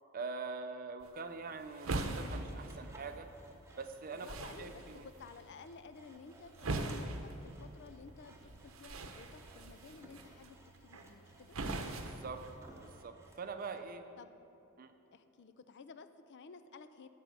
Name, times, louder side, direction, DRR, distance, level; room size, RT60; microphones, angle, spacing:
voice 1, 0.1-3.3 3.8-4.3 4.6-5.1 12.0-12.5 12.8-14.0 14.8-14.9, right 4 dB, 40° right, 8 dB, 0.5 m, -43 dB
sound 1, 1.0-13.0, right 2 dB, 75° right, 0.8 m, -43 dB
Sawing, 1.4-13.8, right 1 dB, 10° right, 0.9 m, -61 dB
voice 2, 4.1-10.6 10.8-11.6 14.2-14.3 15.1-17.1, left 5 dB, 55° left, 11 dB, 0.4 m, -54 dB
9.2 x 5.6 x 7.7 m, 2.9 s
head